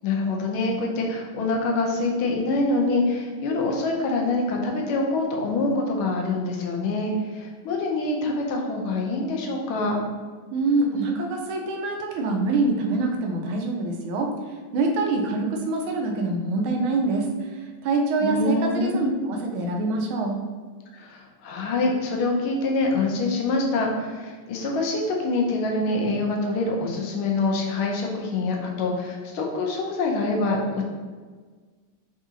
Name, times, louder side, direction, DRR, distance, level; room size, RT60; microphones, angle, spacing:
voice 1, 0.0-10.0 18.2-19.2 20.9-30.8, left 2 dB, 80° left, 1 dB, 1.6 m, -25 dB
voice 2, 10.5-20.4, right 3 dB, 85° right, 2 dB, 1.4 m, -25 dB
4.6 x 3.7 x 2.8 m, 1.5 s
omnidirectional pair, 2.2 m